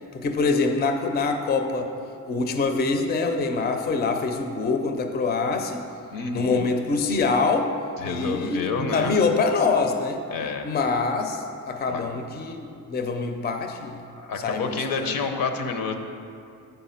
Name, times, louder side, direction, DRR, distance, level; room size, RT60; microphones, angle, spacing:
voice 1, 0.1-1.9 2.3-5.8 6.3-7.7 8.0-10.2 10.6-14.0 14.4-15.1, left 4 dB, 30° left, 5 dB, 0.4 m, -25 dB
voice 2, 6.1-6.7 8.0-9.2 10.3-10.6 11.9-12.0 14.2-16.0, left 4 dB, 85° left, 6 dB, 0.8 m, -29 dB
7.8 x 5.6 x 5.6 m, 2.5 s
wide cardioid pair, 180°, 34 cm